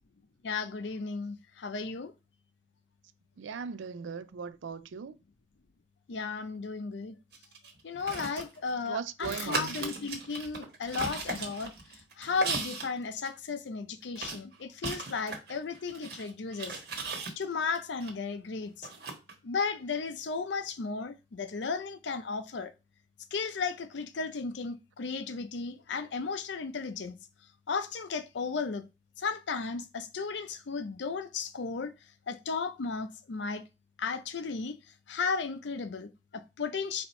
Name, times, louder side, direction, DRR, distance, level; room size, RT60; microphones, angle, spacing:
voice 1, 0.4-2.1 6.1-7.2 7.8-11.7 12.2-16.7 17.4-18.9 19.4-22.7 23.3-27.2 27.7-28.8 29.2-31.9 32.3-33.6 34.0-34.8 35.1-37.1, left 4 dB, 75° left, 0.5 m, -34 dB
voice 2, 3.4-5.2 8.9-9.7, right 6 dB, 90° right, 0.4 m, -38 dB
sound 1, 7.3-8.9 9.2-12.9 13.2-13.3 14.2-18.1 18.8-19.3, right 4 dB, 65° right, 1.2 m, -37 dB
4.2 x 2.9 x 4.3 m
head